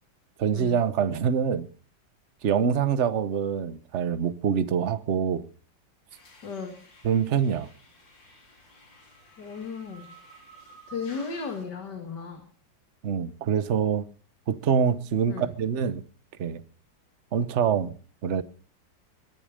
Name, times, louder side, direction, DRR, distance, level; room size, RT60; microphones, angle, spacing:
voice 1, 0.4-1.7 2.4-5.5 7.0-7.7 13.0-14.1 14.5-16.0 16.4-16.6 17.3-17.9 18.2-18.4, right 7 dB, 45° right, 1.1 m, -25 dB
sound 1, 6.1-11.7, right 1 dB, 80° left, 4.6 m, -52 dB
voice 2, 6.4-6.8 9.4-10.1 10.9-12.4 15.3-15.5, left 5 dB, 65° left, 2.7 m, -35 dB
22.0 x 11.0 x 5.1 m
omnidirectional pair, 2.0 m